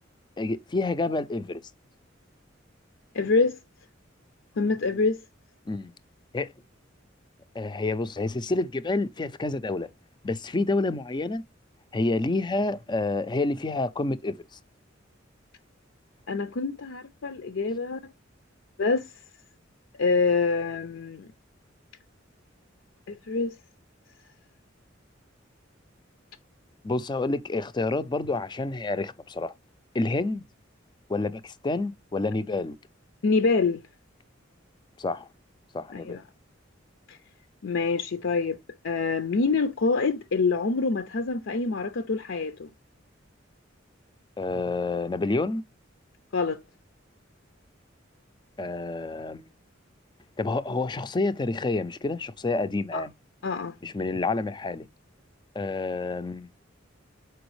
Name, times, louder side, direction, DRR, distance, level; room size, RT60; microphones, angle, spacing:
voice 1, 0.4-1.6 5.7-5.9 6.3-6.5 7.5-9.9 10.2-11.4 11.9-14.4 26.8-29.5 29.9-30.4 31.1-32.8 35.0-35.3 35.7-36.2 44.4-45.6 48.6-49.5 50.4-53.1 53.8-54.9 55.6-56.5, left 2 dB, 25° left, 0.4 m, -28 dB
voice 2, 3.1-3.6 4.6-5.2 16.3-18.0 18.8-19.1 20.0-21.3 23.1-23.5 33.2-33.8 36.1-36.2 37.1-37.2 37.6-38.6 38.8-42.7 46.3-46.6 52.9-53.0 53.4-53.7, left 4 dB, 75° left, 0.5 m, -26 dB
6.9 x 4.7 x 3.1 m
head